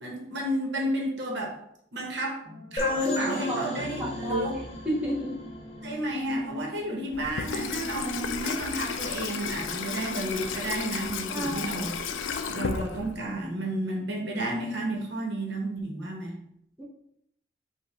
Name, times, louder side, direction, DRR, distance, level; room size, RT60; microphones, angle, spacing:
voice 1, 0.0-1.6 1.9-2.4 2.7-4.6 5.8-11.9 12.5-16.3, right 1 dB, 65° right, 0 dB, 1.0 m, -31 dB
sound 1, 2.4-14.9, equal, 40° right, 1.3 m, -47 dB
sound 2, 2.8-6.3, left 2 dB, 30° left, 0.8 m, -33 dB
voice 2, 3.1-4.5 4.8-5.4 11.3-11.8 16.8-16.9, equal, 5° right, -6 dB, 0.8 m, -32 dB
Water tap faucet / Sink (filling or washing), 7.1-13.4, left 6 dB, 80° left, 0.4 m, -33 dB
5.0 x 2.3 x 4.1 m, 0.74 s
head